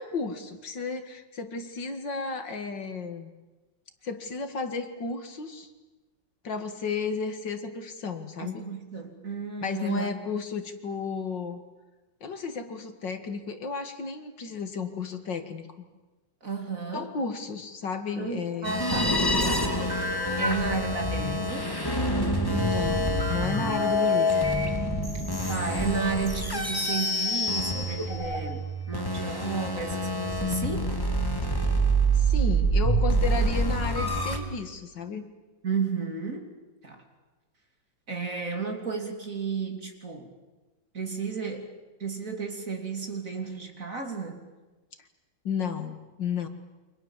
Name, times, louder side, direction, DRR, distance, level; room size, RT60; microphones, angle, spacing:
voice 1, 0.0-3.3 4.0-5.7 6.4-8.7 9.6-11.6 12.2-15.7 16.9-18.8 22.5-24.5 32.1-35.2 45.4-46.5, left 5 dB, 65° left, 7 dB, 2.6 m, -33 dB
voice 2, 8.4-10.1 16.4-17.2 18.1-19.8 20.4-21.7 25.5-31.0 35.6-36.5 36.8-37.0 38.1-40.3 40.9-44.4, right 5 dB, 40° right, 4 dB, 3.4 m, -33 dB
sound 1, 18.6-34.4, right 1 dB, 10° left, 2.7 m, -26 dB
29.0 x 25.0 x 7.4 m, 1.2 s
omnidirectional pair, 2.1 m